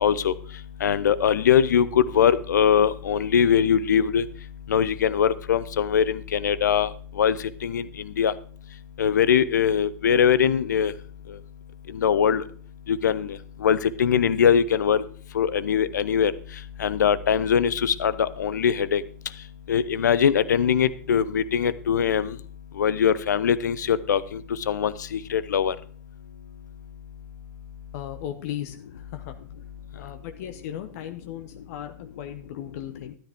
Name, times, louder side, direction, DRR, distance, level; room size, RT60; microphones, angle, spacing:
voice 1, 0.0-4.3 4.7-8.3 9.0-10.9 11.3-11.4 11.9-12.4 12.9-15.0 15.3-22.4 22.7-25.8 29.9-30.0, left 8 dB, 80° left, 16 dB, 0.7 m, -22 dB
voice 2, 27.9-29.3 30.0-33.2, left 11 dB, 60° left, 7 dB, 1.0 m, -37 dB
13.0 x 10.5 x 3.6 m, 0.44 s
hypercardioid pair, 95°, 9 cm